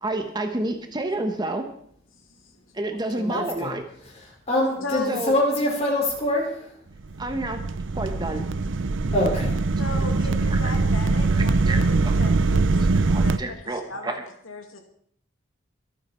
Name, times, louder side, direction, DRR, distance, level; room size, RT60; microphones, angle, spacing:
voice 1, 0.0-1.7 2.7-3.8 5.1-5.4 7.2-7.6 7.9-8.5 9.8-9.9 10.5-10.7 11.3-11.8 12.0-12.2 13.1-14.2, right 2 dB, 20° right, 6 dB, 1.2 m, -29 dB
voice 2, 3.1-3.7 4.5-6.7 9.1-9.6, left 1 dB, 35° left, -2 dB, 5.4 m, -24 dB
voice 3, 4.8-5.3 9.8-12.8 13.2-14.2 14.4-14.8, left 3 dB, 90° left, 4 dB, 2.2 m, -36 dB
sound 1, 7.0-13.4, right 3 dB, 65° right, 0.6 m, -22 dB
24.5 x 8.7 x 4.4 m, 0.63 s
head